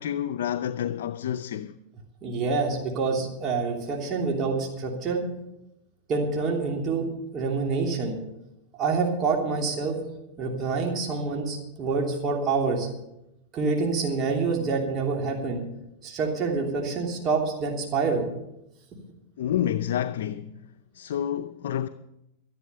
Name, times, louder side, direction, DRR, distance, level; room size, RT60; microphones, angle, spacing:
voice 1, 0.0-1.8 19.4-20.6 20.9-21.9, left 10 dB, 80° left, 0.6 m, -29 dB
voice 2, 2.2-5.2 6.1-7.0 7.3-8.2 8.8-10.0 10.4-12.9 13.5-15.6 16.0-18.3, right 4 dB, 35° right, 3.1 m, -27 dB
13.0 x 11.5 x 6.8 m
hypercardioid pair, 130°, 0 cm